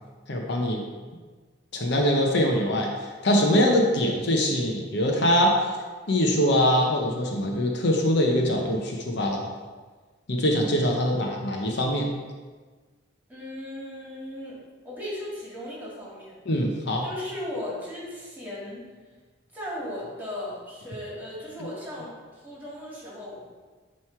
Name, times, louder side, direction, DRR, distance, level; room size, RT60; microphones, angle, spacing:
voice 1, 0.3-0.8 1.7-5.6 6.1-9.5 10.3-12.1 16.5-17.0 21.6-21.7, equal, 60° left, 1 dB, 0.8 m, -23 dB
voice 2, 13.3-16.4 17.0-18.9 19.5-23.5, left 1 dB, 10° right, -6 dB, 2.0 m, -37 dB
9.2 x 3.2 x 4.4 m, 1.4 s
head